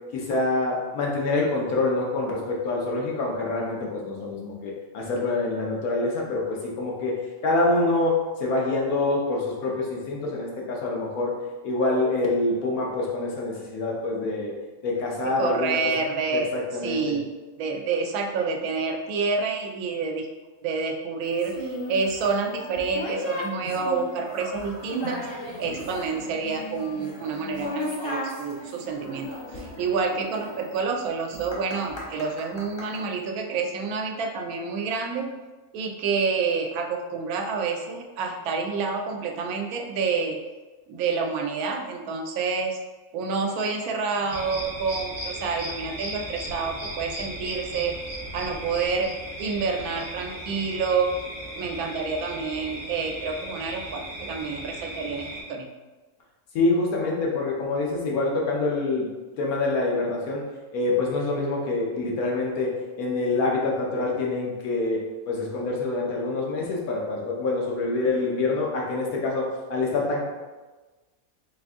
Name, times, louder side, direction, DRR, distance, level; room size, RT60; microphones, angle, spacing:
voice 1, 0.1-7.2 7.4-11.3 11.6-14.5 14.8-15.8 16.3-17.1 56.5-59.1 59.4-60.4 60.7-70.3, left 2 dB, 85° left, -2 dB, 1.3 m, -26 dB
voice 2, 15.2-16.5 16.8-20.3 20.6-25.2 25.6-35.3 35.7-40.4 40.9-42.8 43.1-48.0 48.3-49.1 49.4-51.1 51.6-55.7, right 4 dB, 90° right, 3 dB, 1.1 m, -28 dB
sound 1, 21.4-33.0, equal, 45° left, 0.3 m, -36 dB
sound 2, 44.3-55.4, equal, 50° right, 1.2 m, -37 dB
3.9 x 2.5 x 3.5 m, 1.3 s
omnidirectional pair, 1.5 m